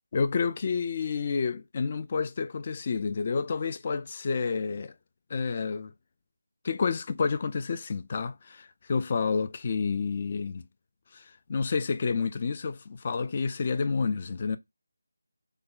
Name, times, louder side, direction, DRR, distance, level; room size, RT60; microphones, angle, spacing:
voice 1, 0.1-4.9 5.3-5.9 6.6-10.6 11.1-14.6, left 5 dB, 35° left, 0.3 m, -29 dB
3.3 x 2.1 x 3.7 m
figure-of-eight pair, 165°, 0 cm